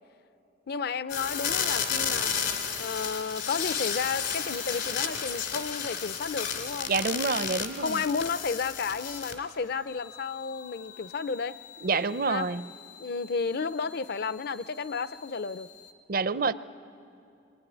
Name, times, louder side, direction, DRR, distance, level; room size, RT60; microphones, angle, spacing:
voice 1, 0.7-2.3 2.8-7.2 7.6-11.6 12.3-12.5 13.0-15.7, left 5 dB, 60° left, 15 dB, 0.6 m, -32 dB
sound 1, 1.1-9.5 9.9-15.9, left 7 dB, 80° left, 2.7 m, -34 dB
voice 2, 6.9-8.0 11.8-12.7 16.1-16.5, right 4 dB, 55° right, 14 dB, 0.6 m, -27 dB
27.5 x 22.0 x 9.9 m, 2.6 s
head